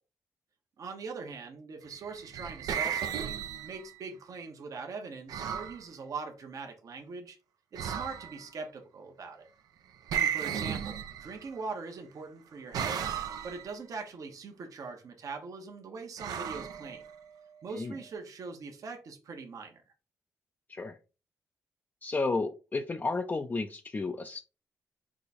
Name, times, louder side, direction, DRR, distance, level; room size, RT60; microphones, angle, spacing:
voice 1, 0.8-7.4 7.7-9.5 10.1-13.0 13.4-17.0 17.6-19.8, right 4 dB, 65° right, 1.0 m, -42 dB
sound 1, 2.0-4.0 5.3-5.8 7.8-8.5 10.1-11.6 12.7-13.7 16.2-17.4, right 8 dB, 85° right, 0.6 m, -34 dB
voice 2, 22.0-24.4, left 3 dB, 30° left, 0.5 m, -32 dB
4.8 x 2.3 x 4.1 m
cardioid pair, 75°, 6 cm